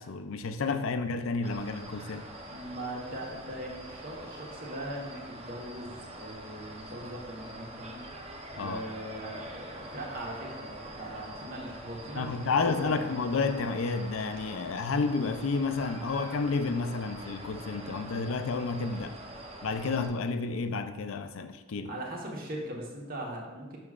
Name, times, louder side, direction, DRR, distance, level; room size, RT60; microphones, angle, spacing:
voice 1, 0.0-2.2 8.6-8.8 12.1-19.2 19.6-21.9, left 4 dB, 80° left, 9 dB, 0.4 m, -31 dB
sound 1, 1.4-20.1, right 1 dB, 30° right, 0.7 m, -44 dB
voice 2, 2.5-8.0 8.5-13.1 21.9-23.8, right 1 dB, 45° right, -2 dB, 1.2 m, -40 dB
6.7 x 6.1 x 2.4 m, 1.2 s
head